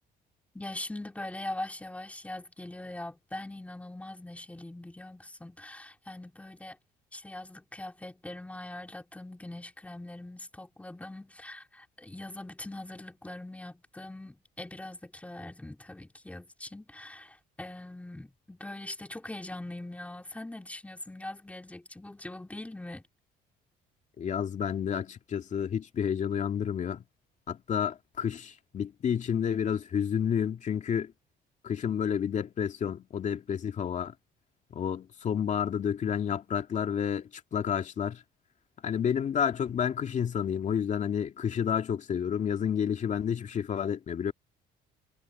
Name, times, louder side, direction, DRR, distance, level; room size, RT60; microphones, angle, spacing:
voice 1, 0.5-6.8 7.1-23.0, left 1 dB, 10° left, 3.4 m, -42 dB
voice 2, 24.2-27.0 27.5-31.1 31.6-34.1 34.7-38.2 38.8-44.3, left 8 dB, 45° left, 2.5 m, -30 dB
cardioid pair, 110°, 17 cm